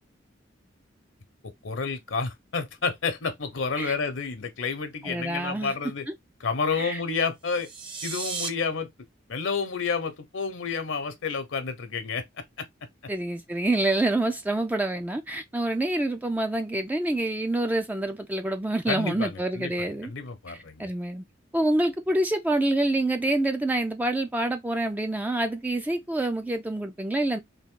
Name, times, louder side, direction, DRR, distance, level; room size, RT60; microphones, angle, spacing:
voice 1, 1.6-6.1 6.4-7.7 8.0-8.9 9.3-12.2 18.9-20.9, left 5 dB, 75° left, 0.8 m, -30 dB
voice 2, 5.0-5.7 6.7-7.0 13.1-20.1 20.5-21.2 21.5-27.4, right 1 dB, 10° right, 0.3 m, -27 dB
sound 1, 7.4-8.5, right 5 dB, 25° right, 0.7 m, -34 dB
3.6 x 2.7 x 3.6 m
head